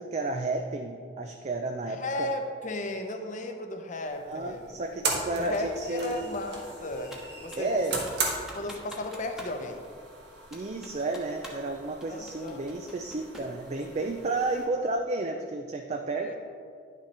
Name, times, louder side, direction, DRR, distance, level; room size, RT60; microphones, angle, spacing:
voice 1, 0.0-2.3 4.3-6.3 7.6-8.0 10.5-16.3, right 2 dB, 40° right, 4 dB, 0.4 m, -32 dB
voice 2, 1.9-4.7 5.3-7.9 8.5-9.8 12.1-12.6 13.4-13.5 13.9-14.1 16.1-16.3, left 2 dB, 45° left, 5 dB, 0.8 m, -35 dB
sound 1, 4.0-14.7, right 3 dB, 70° right, 1.5 m, -38 dB
Computer keyboard, 7.1-7.7 8.1-9.6 9.8-9.9 10.5-11.7 12.0-13.6, equal, 5° right, 1.1 m, -46 dB
10.0 x 6.1 x 4.2 m, 2.2 s
head